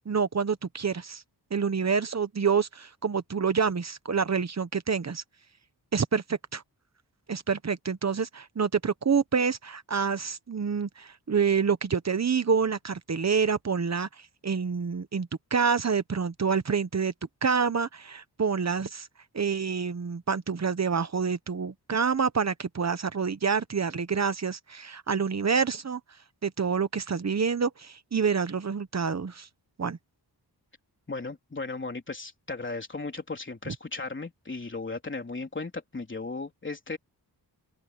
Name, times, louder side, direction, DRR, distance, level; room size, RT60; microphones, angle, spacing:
voice 1, 0.0-1.2 1.5-5.2 5.9-6.6 7.3-17.1 17.4-19.1 19.3-29.5 29.8-30.0 33.7-33.8, right 6 dB, 40° right, 1.0 m, -27 dB
voice 2, 31.1-37.0, left 3 dB, 30° left, 3.7 m, -36 dB
open air
wide cardioid pair, 125°, 40 cm